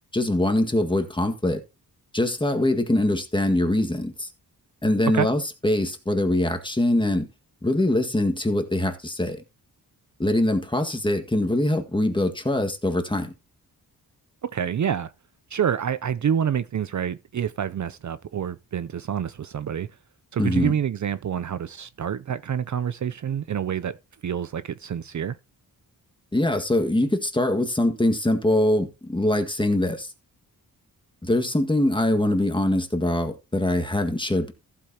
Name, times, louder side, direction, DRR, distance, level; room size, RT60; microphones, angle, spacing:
voice 1, 0.1-1.6 2.1-4.3 4.8-7.3 7.6-9.4 10.2-13.3 20.4-20.8 26.3-30.1 31.2-34.5, left 1 dB, 15° left, 1.8 m, -23 dB
voice 2, 14.4-15.1 15.5-19.9 20.3-24.0 24.2-25.4, right 8 dB, 50° right, 0.6 m, -27 dB
15.0 x 8.3 x 2.9 m
wide cardioid pair, 105°, 37 cm